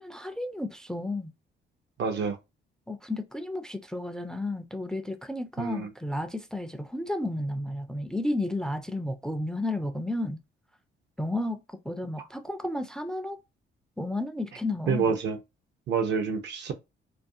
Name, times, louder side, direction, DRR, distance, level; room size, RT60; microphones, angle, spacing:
voice 1, 0.0-1.3 2.9-10.4 11.2-13.4 14.0-15.1, left 1 dB, 5° left, 0.3 m, -32 dB
voice 2, 2.0-2.4 5.6-5.9 12.2-12.3 14.9-15.4 15.9-16.7, right 6 dB, 60° right, 0.6 m, -27 dB
2.5 x 2.2 x 2.6 m
cardioid pair, 90°, 20 cm